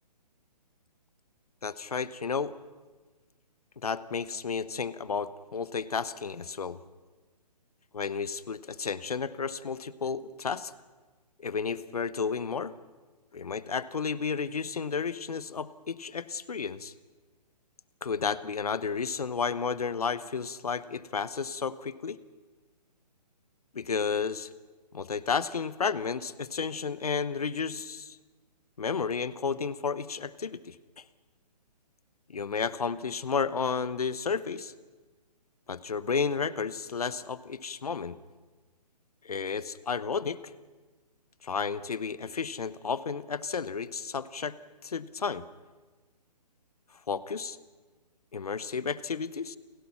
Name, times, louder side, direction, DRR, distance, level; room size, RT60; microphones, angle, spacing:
voice 1, 1.6-2.5 3.8-6.8 7.9-10.7 11.4-12.7 13.3-16.9 18.0-22.2 23.7-24.5 24.9-28.2 28.8-31.0 32.3-34.7 35.7-38.2 39.2-40.4 41.4-44.6 44.8-45.4 47.1-47.6 48.3-49.6, left 5 dB, 60° left, 17 dB, 1.0 m, -32 dB
29.5 x 16.0 x 5.8 m, 1.3 s
figure-of-eight pair, 130°, 21 cm